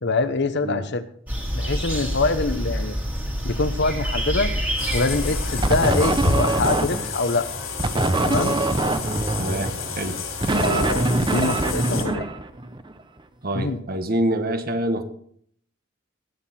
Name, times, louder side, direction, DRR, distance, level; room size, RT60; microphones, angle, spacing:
voice 1, 0.0-1.0 1.5-3.0 3.4-4.5 4.9-7.5 8.2-8.6 10.5-12.3 13.5-13.8, left 3 dB, 60° left, 10 dB, 1.0 m, -24 dB
sound 1, 1.3-6.3, equal, 10° right, 2.0 m, -27 dB
sound 2, 4.8-12.0, left 4 dB, 75° left, 3.4 m, -30 dB
sound 3, 5.6-7.2 7.8-12.9, right 2 dB, 25° right, 0.8 m, -23 dB
voice 2, 9.4-10.9 13.4-15.0, right 1 dB, 50° right, 8 dB, 1.3 m, -26 dB
18.5 x 8.2 x 4.3 m, 0.64 s
head